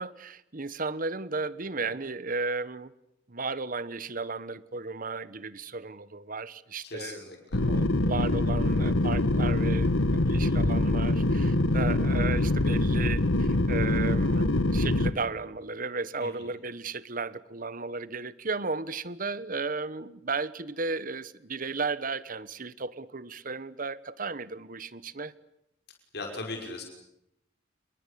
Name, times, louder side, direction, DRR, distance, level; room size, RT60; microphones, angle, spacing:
voice 1, 0.0-2.9 3.3-7.2 7.7-25.3, right 4 dB, 45° right, 17 dB, 1.2 m, -34 dB
voice 2, 6.8-7.6 16.2-16.3 26.1-26.8, left 2 dB, 55° left, 3 dB, 5.8 m, -38 dB
sound 1, 7.5-15.1, left 2 dB, 90° left, 1.4 m, -24 dB
29.0 x 22.5 x 8.4 m, 0.82 s
head